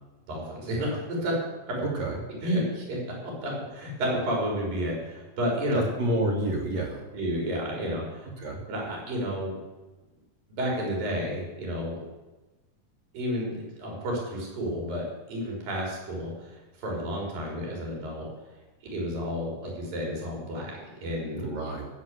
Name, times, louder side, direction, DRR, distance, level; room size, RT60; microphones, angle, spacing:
voice 1, 0.3-1.3 1.7-1.8 2.4-5.8 7.1-8.3 8.7-9.6 10.5-12.0 13.1-18.3 18.9-21.5, equal, 90° right, -1 dB, 5.7 m, -31 dB
voice 2, 1.8-2.2 5.7-7.0 8.2-8.6 21.4-21.9, right 1 dB, 55° right, -2 dB, 2.7 m, -29 dB
15.5 x 7.4 x 7.7 m, 1.1 s
omnidirectional pair, 3.9 m